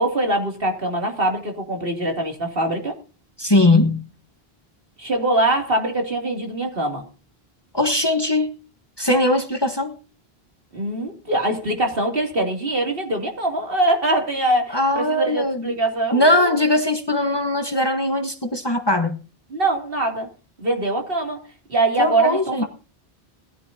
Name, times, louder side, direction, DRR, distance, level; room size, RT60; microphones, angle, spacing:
voice 1, 0.0-3.0 5.0-7.0 10.7-16.6 19.5-20.3 20.6-21.4 21.7-22.6, right 1 dB, 60° right, 2 dB, 3.2 m, -23 dB
voice 2, 3.4-4.0 7.7-8.5 9.0-9.9 14.7-15.7 16.1-19.2 22.0-22.6, left 1 dB, 25° left, 6 dB, 1.3 m, -20 dB
21.0 x 14.0 x 2.8 m, 0.36 s
omnidirectional pair, 1.0 m